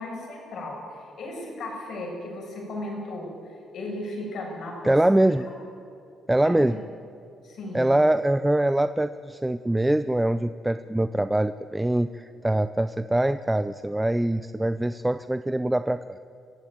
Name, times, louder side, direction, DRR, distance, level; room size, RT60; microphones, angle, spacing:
voice 1, 0.0-5.5 6.4-6.6 7.4-7.9, left 1 dB, 65° left, 0 dB, 7.4 m, -36 dB
voice 2, 4.8-5.4 6.3-6.8 7.7-16.0, right 1 dB, 10° right, 12 dB, 0.5 m, -23 dB
24.5 x 15.0 x 9.0 m, 2.6 s
cardioid pair, 90°, 0 cm